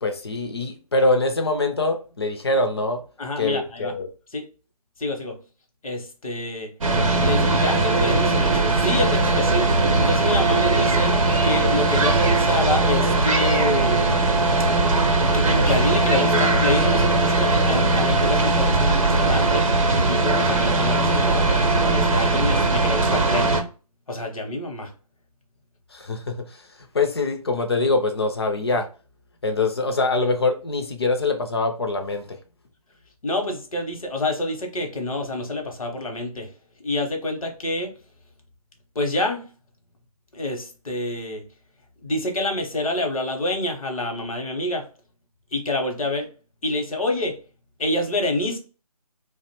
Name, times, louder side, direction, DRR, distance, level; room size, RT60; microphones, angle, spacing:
voice 1, 0.0-3.0 3.4-4.1 25.9-26.7 26.9-28.9 29.4-32.4, left 2 dB, 40° left, 0.4 m, -24 dB
voice 2, 3.2-3.9 4.3-4.5 5.0-5.4 5.8-6.7 7.2-9.7 10.0-14.1 15.3-19.7 19.9-23.6 24.1-24.9 33.2-36.5 36.8-37.9 38.9-39.5 40.3-41.4 42.0-44.9 45.5-46.3 46.6-47.4 47.8-48.6, left 2 dB, 65° left, 0.8 m, -27 dB
sound 1, 6.8-23.6, right 2 dB, 55° right, 0.6 m, -19 dB
2.5 x 2.0 x 2.9 m
figure-of-eight pair, 155°, 20 cm